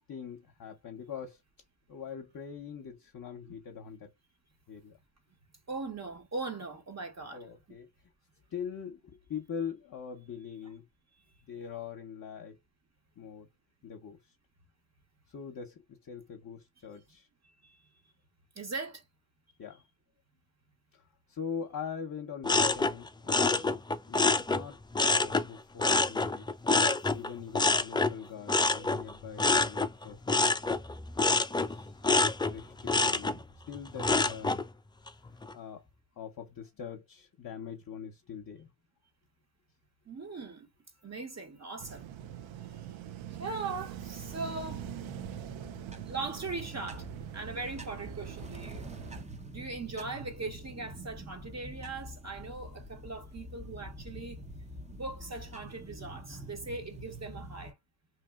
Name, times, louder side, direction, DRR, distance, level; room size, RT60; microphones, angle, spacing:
voice 1, 0.1-1.4 1.9-4.1 4.7-5.0 7.3-7.9 8.5-10.9 11.5-12.6 13.2-13.5 13.8-14.3 15.3-17.3 19.6-19.8 20.9-21.0 21.3-26.5 27.1-30.8 31.5-31.9 32.5-34.6 35.5-35.9 36.2-38.7, left 7 dB, 45° left, 0.8 m, -43 dB
voice 2, 5.7-7.4 17.6-17.9 18.6-19.0 40.1-40.7 41.0-42.0 43.4-45.0 46.0-47.1 47.3-48.9 49.5-54.4 54.9-57.7, right 3 dB, 35° right, 1.0 m, -40 dB
sound 1, 22.4-25.5 25.8-34.6 35.1-35.5, left 3 dB, 10° left, 0.3 m, -27 dB
sound 2, 41.8-49.2, right 10 dB, 75° right, 0.6 m, -43 dB
sound 3, 43.3-57.7, equal, 15° right, 0.7 m, -47 dB
2.9 x 2.6 x 2.3 m
cardioid pair, 80°, 47 cm